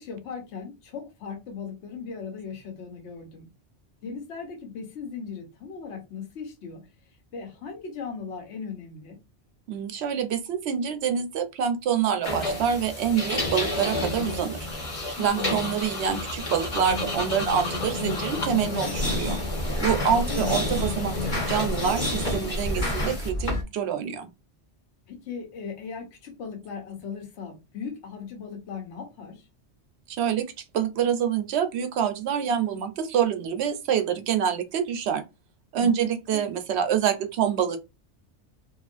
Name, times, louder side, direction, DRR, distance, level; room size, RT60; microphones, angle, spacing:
voice 1, 0.0-3.5 4.0-6.9 7.3-9.2 15.2-15.6 20.0-20.5 25.1-29.5 35.8-35.9 36.3-36.4, left 6 dB, 80° left, 1.0 m, -38 dB
voice 2, 9.7-14.6 15.2-19.4 19.8-24.3 30.1-30.5 30.7-35.2 35.7-37.8, right 8 dB, 75° right, 0.8 m, -26 dB
sound 1, 12.2-23.6, left 2 dB, 45° left, 1.1 m, -29 dB
2.8 x 2.4 x 2.4 m
omnidirectional pair, 1.2 m